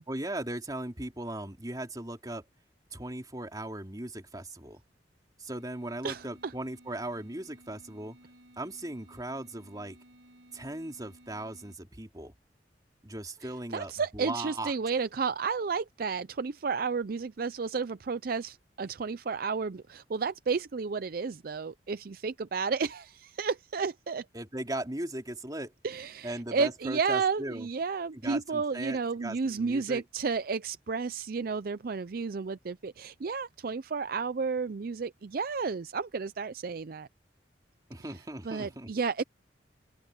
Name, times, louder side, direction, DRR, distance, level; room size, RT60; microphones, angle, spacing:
voice 1, 0.1-2.4 2.9-4.8 5.4-8.2 8.6-10.0 10.5-12.3 13.0-14.7 24.3-25.7 26.2-27.7 28.2-30.0 37.9-38.9, right 1 dB, 20° right, 3.2 m, -38 dB
sound 1, 5.5-11.8, right 1 dB, 90° right, 7.8 m, -57 dB
voice 2, 6.0-6.5 13.4-24.3 25.8-37.1 38.1-39.2, right 5 dB, 55° right, 0.5 m, -32 dB
open air
head